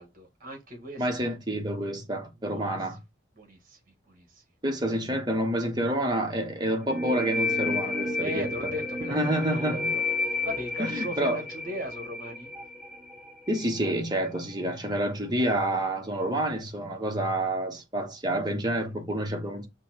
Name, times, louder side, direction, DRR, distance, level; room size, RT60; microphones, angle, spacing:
voice 1, 0.0-1.3 2.0-3.0 3.4-4.4 8.2-12.5, equal, 45° right, 1.5 m, -39 dB
voice 2, 1.0-3.0 4.6-8.5 9.0-9.9 10.8-11.4 13.5-19.7, right 1 dB, 20° right, 0.9 m, -28 dB
sound 1, 6.9-14.3, left 2 dB, ahead, 0.5 m, -32 dB
5.5 x 2.2 x 4.2 m
head